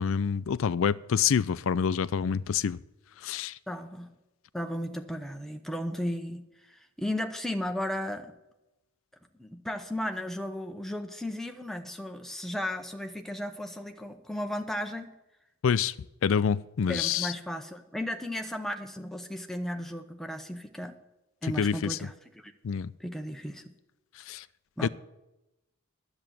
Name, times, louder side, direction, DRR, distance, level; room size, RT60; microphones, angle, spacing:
voice 1, 0.0-2.8 3.2-3.6 15.6-15.9 16.2-17.3 21.4-22.0 22.6-22.9 24.2-24.4 24.8-24.9, left 7 dB, 65° left, 0.4 m, -27 dB
voice 2, 3.7-4.1 4.5-8.3 9.4-15.1 16.9-21.0 21.4-22.5 23.0-23.6 24.8-24.9, left 1 dB, ahead, 0.7 m, -35 dB
10.5 x 7.9 x 7.4 m
head